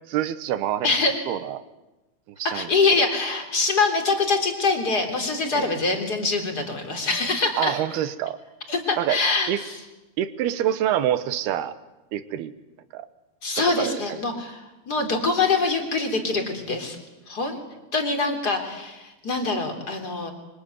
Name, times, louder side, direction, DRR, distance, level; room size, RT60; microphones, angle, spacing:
voice 1, 0.1-1.0 1.3-1.6 2.4-2.7 5.5-5.7 7.6-8.4 9.0-9.2 9.5-9.6 10.2-11.7 12.1-12.5 12.9-13.1 13.8-14.2, right 11 dB, 80° right, 12 dB, 3.1 m, -26 dB
voice 2, 0.8-1.2 2.4-7.7 8.7-9.7 13.4-17.0 17.3-17.6 17.9-20.3, left 3 dB, 25° left, 4 dB, 3.7 m, -24 dB
25.0 x 24.5 x 9.6 m, 1.0 s
omnidirectional pair, 4.6 m